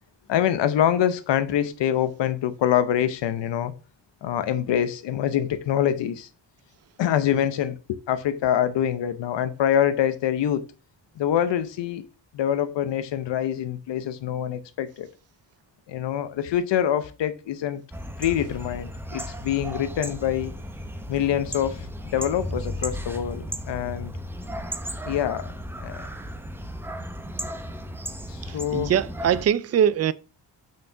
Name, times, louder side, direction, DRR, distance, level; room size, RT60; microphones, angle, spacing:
voice 1, 0.3-3.7 4.2-6.3 7.0-10.7 11.2-12.0 12.3-15.1 15.9-17.8 18.2-20.5 21.1-24.1 25.0-25.5 25.8-26.1 28.3-28.9, left 10 dB, 80° left, 0.8 m, -25 dB
sound 1, 17.9-29.5, equal, 5° right, 0.7 m, -35 dB
voice 2, 28.5-30.1, right 9 dB, 40° right, 0.4 m, -22 dB
6.2 x 4.6 x 5.8 m
wide cardioid pair, 140°, 42 cm